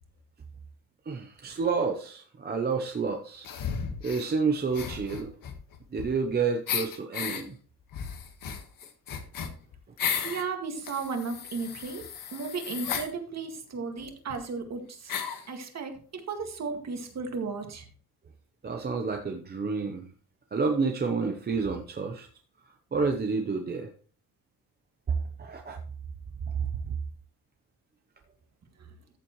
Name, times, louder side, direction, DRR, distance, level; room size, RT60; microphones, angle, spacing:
voice 1, 1.1-3.5 4.0-5.3 5.9-7.6 18.6-20.1 20.5-22.3 22.9-23.9 25.4-25.8 26.6-26.9, right 4 dB, 25° right, 4 dB, 0.7 m, -29 dB
sound 1, 3.4-4.3 4.7-6.3 6.7-7.4 7.9-10.4 10.8-13.1 14.0-14.1 14.3-14.4 15.1-15.5, left 7 dB, 60° left, 1.6 m, -34 dB
voice 2, 10.2-12.0 12.3-15.1 15.5-15.9 16.3-17.9 28.8-28.9, right 4 dB, 45° right, 4 dB, 2.0 m, -34 dB
14.0 x 7.4 x 3.1 m, 0.41 s
cardioid pair, 165°, 38 cm